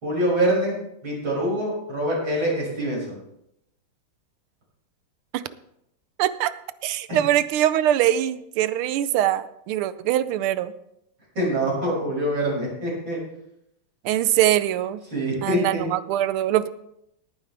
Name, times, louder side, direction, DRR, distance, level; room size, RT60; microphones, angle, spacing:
voice 1, 0.0-3.2 7.1-7.2 11.4-13.2 15.1-15.9, right 1 dB, 70° right, -5 dB, 6.9 m, -25 dB
voice 2, 6.2-6.5 6.8-10.7 14.0-15.0 15.4-16.7, right 12 dB, 85° right, 15 dB, 1.6 m, -22 dB
19.0 x 9.5 x 3.4 m, 0.79 s
omnidirectional pair, 2.3 m